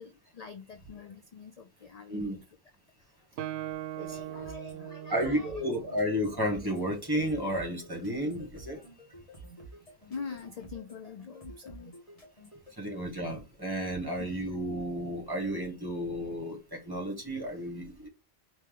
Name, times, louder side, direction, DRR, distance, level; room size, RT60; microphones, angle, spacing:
voice 1, 0.0-2.4 3.9-5.6 10.1-11.9 14.2-14.3, left 5 dB, 50° left, 0.5 m, -44 dB
Guitar, 3.4-7.0, right 13 dB, 75° right, 0.8 m, -41 dB
voice 2, 4.0-4.4 5.1-8.8 12.8-18.1, equal, 20° right, 1.5 m, -32 dB
sound 1, 4.4-12.7, right 1 dB, 35° left, 1.5 m, -50 dB
4.4 x 2.9 x 3.7 m
omnidirectional pair, 1.1 m